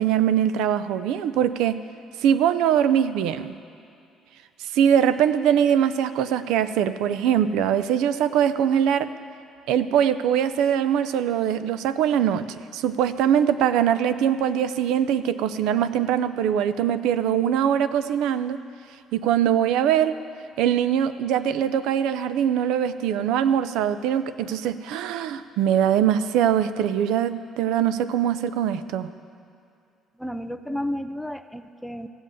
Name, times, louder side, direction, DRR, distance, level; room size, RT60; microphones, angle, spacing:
voice 1, 0.0-1.8 2.2-3.6 4.6-9.1 9.7-12.5 12.7-18.6 19.1-20.1 20.6-29.1, right 9 dB, 85° right, 13 dB, 0.5 m, -22 dB
voice 2, 30.2-32.1, left 1 dB, ahead, 10 dB, 0.4 m, -32 dB
15.5 x 7.7 x 7.9 m, 2.5 s
cardioid pair, 160°, 0 cm